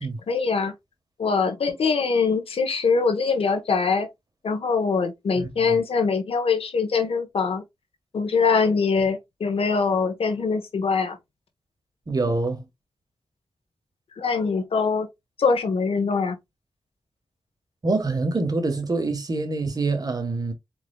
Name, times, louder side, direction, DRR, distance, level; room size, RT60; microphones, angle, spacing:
voice 1, 0.3-0.7 1.2-4.1 4.4-7.6 8.1-11.2 14.2-15.1 15.4-16.4, left 5 dB, 85° left, 1.2 m, -23 dB
voice 2, 5.4-5.8 12.1-12.6 17.8-20.5, right 3 dB, 40° right, 1.4 m, -25 dB
4.6 x 3.8 x 2.3 m
cardioid pair, 70°, 10 cm